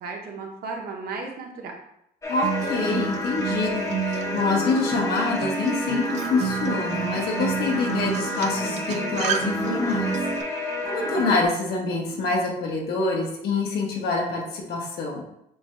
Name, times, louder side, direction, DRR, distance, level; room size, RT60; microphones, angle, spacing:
voice 1, 0.0-1.8 11.0-11.2, right 4 dB, 65° right, 1 dB, 0.9 m, -35 dB
sound 1, 2.2-11.5, left 2 dB, 20° left, 0.7 m, -30 dB
voice 2, 2.3-10.2 10.8-15.2, left 3 dB, 70° left, 0 dB, 1.1 m, -26 dB
Acoustic guitar, 2.4-10.4, right 8 dB, 45° right, 0.4 m, -30 dB
6.8 x 2.7 x 2.2 m, 0.76 s
cardioid pair, 110°, 17 cm